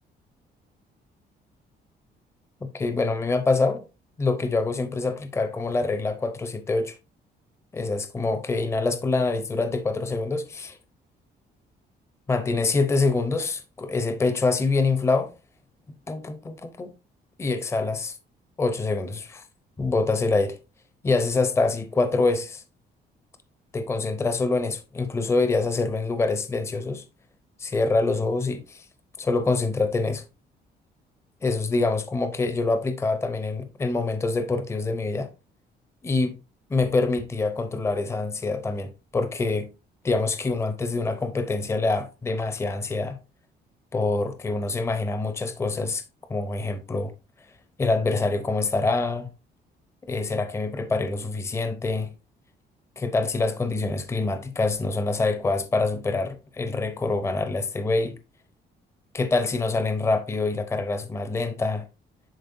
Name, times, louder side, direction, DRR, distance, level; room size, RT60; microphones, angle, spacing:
voice 1, 2.7-3.8 4.2-6.9 7.7-10.8 12.3-15.3 16.1-16.9 17.4-18.1 18.6-19.4 19.8-20.6 21.0-22.6 23.7-27.0 27.6-28.8 29.2-30.2 31.4-35.3 36.0-36.4 36.7-39.7 40.0-43.2 43.9-46.0 46.3-47.1 47.8-49.3 50.1-52.1 53.0-58.2 59.1-61.9, left 3 dB, 15° left, 0.6 m, -25 dB
10.5 x 4.2 x 2.6 m
cardioid pair, 180°, 18 cm